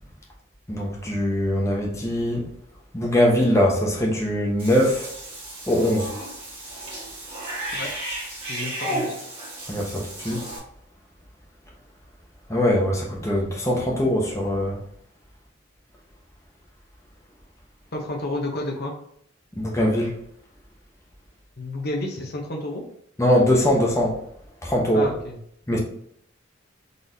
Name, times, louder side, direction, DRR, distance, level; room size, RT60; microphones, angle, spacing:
voice 1, 0.7-2.4 2.9-5.1 5.7-6.1 9.7-10.4 12.5-14.8 19.6-20.1 23.2-24.2 24.6-25.1 25.7-25.8, equal, 15° left, 0.9 m, -22 dB
Cat / Bathtub (filling or washing), 4.6-10.6, right 1 dB, 30° right, 1.6 m, -33 dB
voice 2, 8.5-9.2 17.9-18.9 21.6-22.8 24.9-25.4 25.7-25.8, left 2 dB, 55° left, 0.8 m, -30 dB
4.0 x 3.3 x 2.7 m
head